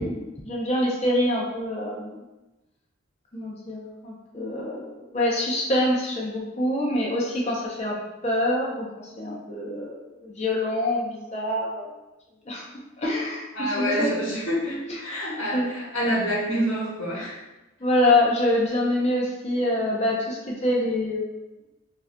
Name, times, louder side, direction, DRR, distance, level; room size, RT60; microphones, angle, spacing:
voice 1, 0.0-2.2 3.3-8.0 8.2-11.9 12.5-12.6 13.0-14.2 14.7-15.0 15.5-15.7 17.8-21.3, left 1 dB, 30° left, -3 dB, 0.6 m, -25 dB
voice 2, 13.5-17.4, equal, 65° left, -5 dB, 1.3 m, -27 dB
5.2 x 2.5 x 2.2 m, 1.0 s
head